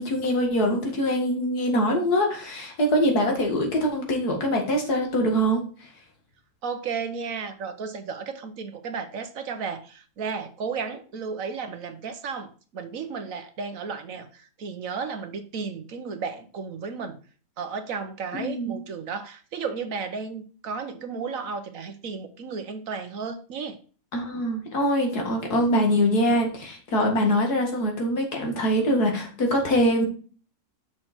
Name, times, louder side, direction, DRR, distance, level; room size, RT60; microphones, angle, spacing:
voice 1, 0.0-5.6 18.3-18.8 24.1-30.1, equal, 80° left, 2 dB, 2.5 m, -23 dB
voice 2, 6.6-17.2 17.6-23.8, right 5 dB, 65° right, 9 dB, 1.3 m, -33 dB
6.6 x 6.0 x 4.2 m, 0.40 s
omnidirectional pair, 1.6 m